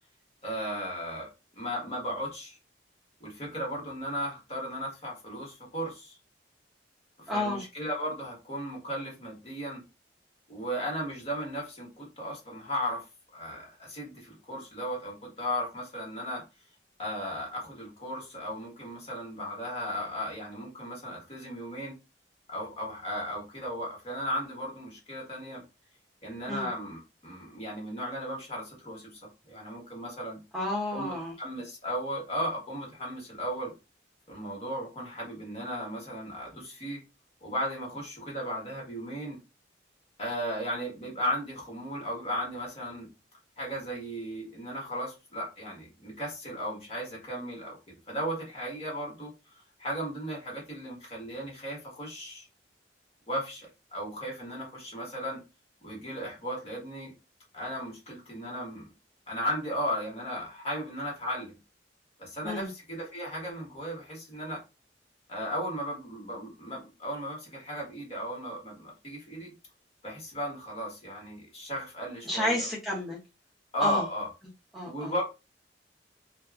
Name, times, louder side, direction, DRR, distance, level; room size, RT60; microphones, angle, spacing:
voice 1, 0.4-1.3 1.5-2.6 3.2-6.2 7.2-9.8 10.5-13.0 13.3-16.4 17.0-21.9 22.5-25.6 26.2-30.4 30.9-33.7 34.3-37.0 37.4-39.4 40.2-43.1 43.6-47.8 48.1-52.5 53.3-55.4 55.8-57.1 57.5-58.9 59.3-61.6 62.2-64.6 65.3-69.5 70.0-72.7 73.7-74.3 74.9-75.2, equal, 35° left, -2 dB, 1.3 m, -35 dB
voice 2, 7.3-7.6 26.5-26.7 30.5-31.3 62.4-62.7 72.2-73.2 73.8-74.0 74.7-75.1, left 1 dB, ahead, -5 dB, 0.7 m, -31 dB
2.7 x 2.3 x 2.3 m, 0.26 s
head